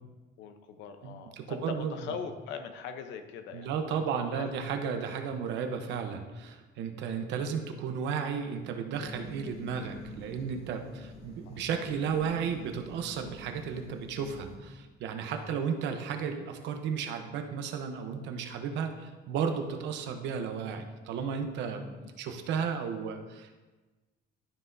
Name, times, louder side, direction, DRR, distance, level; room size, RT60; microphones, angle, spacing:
voice 1, 0.4-4.0 4.3-4.5 7.2-7.4 11.5-11.6 15.3-15.6 22.0-22.2, left 6 dB, 80° left, 7 dB, 0.8 m, -42 dB
voice 2, 1.0-2.0 3.5-21.9 22.2-23.6, right 6 dB, 75° right, 6 dB, 0.9 m, -34 dB
sound 1, 8.9-14.6, left 1 dB, 30° left, 1.5 m, -48 dB
12.0 x 5.6 x 2.7 m, 1.2 s
cardioid pair, 160°, 19 cm